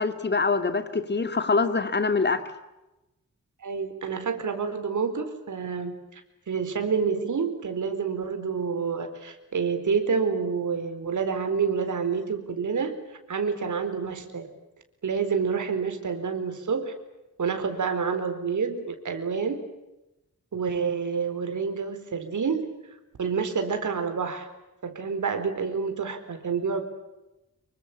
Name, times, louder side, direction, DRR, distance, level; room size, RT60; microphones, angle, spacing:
voice 1, 0.0-2.4, left 4 dB, 35° left, 9 dB, 2.4 m, -24 dB
voice 2, 3.6-6.2 6.5-12.9 13.3-14.5 15.0-16.9 17.4-19.6 20.5-22.7 23.2-24.5 24.8-26.8, right 5 dB, 75° right, 8 dB, 4.3 m, -28 dB
27.0 x 24.0 x 8.5 m, 0.97 s
wide cardioid pair, 145°, 30 cm